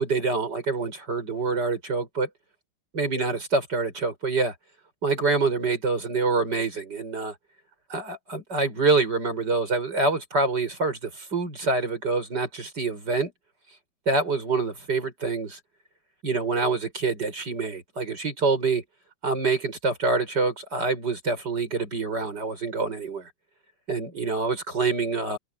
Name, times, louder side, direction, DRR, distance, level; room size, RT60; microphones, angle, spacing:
voice 1, 0.0-2.3 2.9-4.5 5.0-7.3 7.9-13.3 14.1-15.6 16.2-18.8 19.2-23.3 23.9-25.4, right 3 dB, 55° right, 7.5 m, -26 dB
omnidirectional pair, 2.1 m